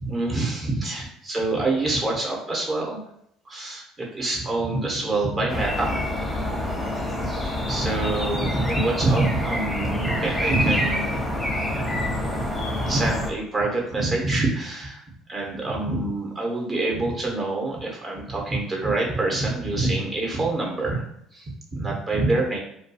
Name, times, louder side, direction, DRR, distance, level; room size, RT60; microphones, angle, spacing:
voice 1, 0.0-3.0 3.5-6.1 6.9-7.1 7.6-11.3 11.7-12.5 12.7-15.0 15.3-21.0 21.3-22.6, right 2 dB, 30° right, -1 dB, 0.9 m, -26 dB
sound 1, 5.5-13.3, left 1 dB, 10° left, 0.6 m, -27 dB
2.3 x 2.2 x 2.8 m, 0.74 s
hypercardioid pair, 75°, 0 cm